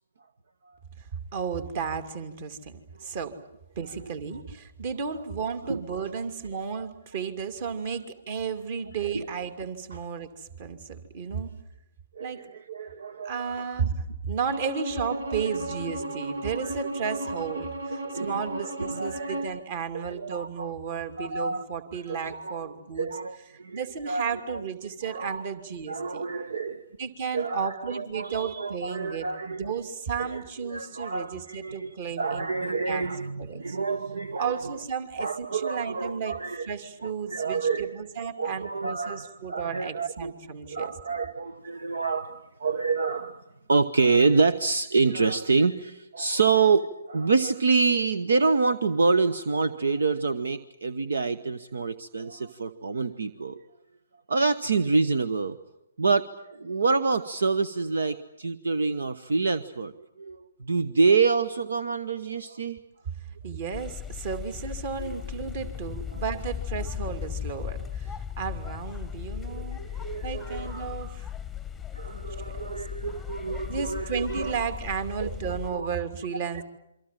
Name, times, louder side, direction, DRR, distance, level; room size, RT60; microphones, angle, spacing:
voice 1, 1.0-3.3 3.8-11.5 12.2-12.5 13.2-23.1 23.7-26.2 27.0-33.1 33.4-33.8 34.4-36.4 36.7-41.2 63.4-69.8 70.2-71.3 72.5-72.7 73.7-76.6, right 6 dB, 45° right, 8 dB, 2.7 m, -33 dB
voice 2, 12.1-13.7 15.4-15.5 16.4-16.7 17.1-17.4 17.9-19.4 19.9-21.6 22.1-22.6 23.0-23.8 24.1-24.6 25.0-25.5 25.9-26.8 27.3-29.6 30.2-34.7 35.2-36.7 37.0-37.9 38.4-40.3 40.7-43.4 43.7-53.6 54.3-55.6 56.0-56.3 56.6-62.8 65.0-65.1 69.5-71.0 71.9-74.7 75.2-75.3 75.7-75.9 76.5-76.6, right 4 dB, 70° right, 14 dB, 1.0 m, -27 dB
Bowed string instrument, 14.5-19.6, right 1 dB, 85° right, 7.3 m, -35 dB
sound 1, 63.7-75.7, left 9 dB, 5° left, 1.0 m, -37 dB
27.5 x 24.5 x 7.6 m, 0.84 s
figure-of-eight pair, 130°, 0 cm